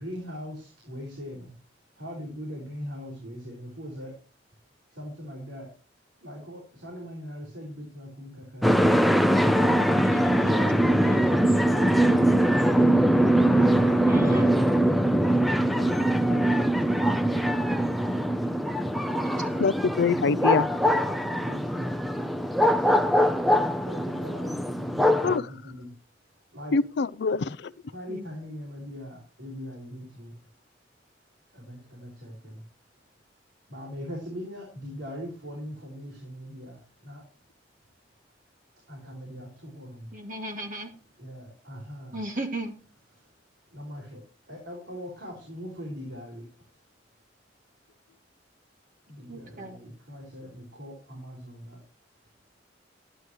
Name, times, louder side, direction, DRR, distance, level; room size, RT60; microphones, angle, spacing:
voice 1, 0.0-1.5 1.9-4.2 4.9-5.7 6.2-9.1 9.9-12.9 13.5-14.6 15.0-17.5 19.3-19.7 21.0-22.0 23.6-25.9 26.5-26.8 27.9-30.3 31.5-32.6 33.7-37.2 38.9-40.1 41.2-42.2 43.2-43.3 43.7-46.7 49.1-51.8, equal, 90° right, 4.8 m, -40 dB
sound 1, 8.6-25.4, equal, ahead, 0.6 m, -22 dB
voice 2, 10.0-10.5 11.0-11.3 14.1-14.5 28.1-28.3 40.1-40.9 42.1-42.8 49.3-49.8, right 2 dB, 45° right, 2.3 m, -35 dB
voice 3, 19.6-20.7 25.2-25.4 26.7-27.6, left 5 dB, 65° left, 0.4 m, -24 dB
11.5 x 11.0 x 3.1 m
head